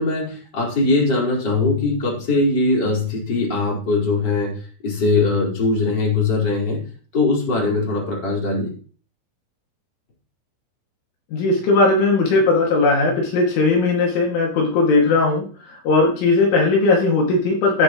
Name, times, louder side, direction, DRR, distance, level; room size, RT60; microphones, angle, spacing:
voice 1, 0.0-4.6 4.8-6.8 7.1-8.7, left 3 dB, 20° left, -3 dB, 4.4 m, -21 dB
voice 2, 11.3-17.8, left 3 dB, 70° left, -1 dB, 4.6 m, -18 dB
15.0 x 8.9 x 3.1 m, 0.41 s
omnidirectional pair, 5.8 m